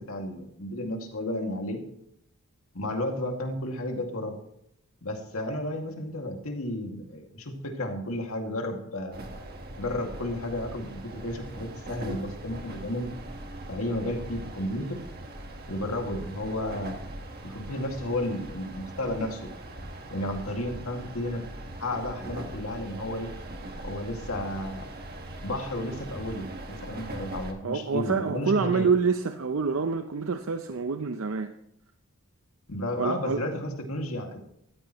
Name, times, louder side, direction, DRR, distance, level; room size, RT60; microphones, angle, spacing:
voice 1, 0.0-1.8 2.7-4.4 5.0-9.2 9.8-13.1 13.7-15.0 15.7-17.0 17.4-19.5 20.1-21.4 21.8-23.3 23.8-24.9 25.4-28.9 32.7-34.4, left 1 dB, 75° left, 2.2 m, -32 dB
sound 1, 9.1-27.5, right 1 dB, 45° right, 1.5 m, -41 dB
voice 2, 27.6-31.5 33.0-33.4, right 5 dB, 65° right, 0.6 m, -27 dB
14.5 x 13.5 x 3.0 m
head